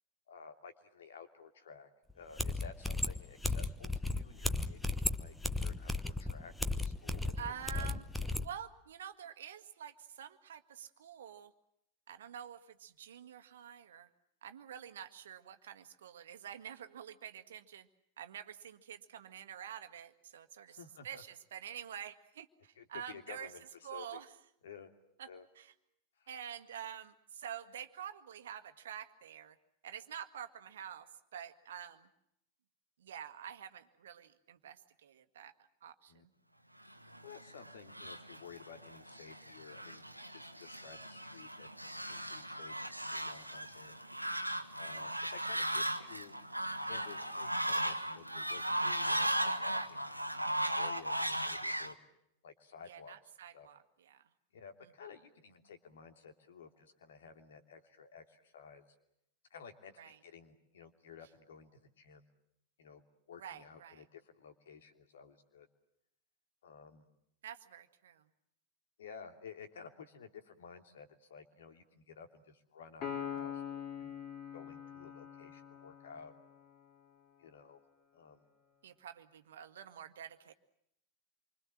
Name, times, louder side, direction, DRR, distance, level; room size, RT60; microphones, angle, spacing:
voice 1, 0.3-1.9 2.1-6.5 6.8-7.9 20.7-21.2 22.8-23.6 23.9-24.2 24.6-24.9 25.3-25.5 26.2-26.3 36.1-36.2 37.2-41.7 42.0-44.0 44.8-46.4 46.9-50.1 50.7-52.0 52.4-53.1 53.5-53.7 54.5-58.8 59.5-62.2 62.8-63.0 63.3-65.7 66.6-67.1 69.0-73.6 74.0-74.2 74.5-76.3 77.4-77.8 78.1-78.4, left 6 dB, 60° left, 6 dB, 3.0 m, -53 dB
sound 1, 2.1-2.2 2.4-8.5, left 2 dB, 5° left, 1.2 m, -35 dB
voice 2, 7.4-8.0 8.4-11.5 12.1-14.1 14.4-17.9 18.2-23.5 23.8-24.3 25.2-25.3 25.5-25.7 26.3-29.6 29.8-31.1 31.3-32.1 33.0-35.5 35.8-36.3 52.9-54.2 60.0-60.2 63.4-64.0 67.4-68.3 78.8-80.5, right 9 dB, 60° right, 10 dB, 1.7 m, -48 dB
Fowl, 37.1-51.9, right 1 dB, 90° right, 1.4 m, -37 dB
Piano, 73.0-76.6, left 8 dB, 40° left, 3.3 m, -43 dB
27.5 x 25.0 x 7.6 m, 0.79 s
figure-of-eight pair, 90°, 0 cm